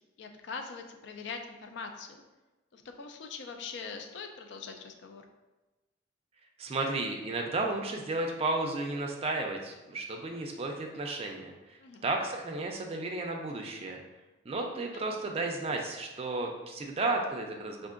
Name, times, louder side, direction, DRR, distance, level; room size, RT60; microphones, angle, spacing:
voice 1, 0.2-2.2 2.7-5.2 11.8-12.1 14.9-15.2, left 5 dB, 65° left, 5 dB, 0.4 m, -42 dB
voice 2, 6.6-14.0 14.5-17.9, right 2 dB, 30° right, 2 dB, 0.4 m, -33 dB
4.5 x 2.5 x 2.4 m, 1.1 s
head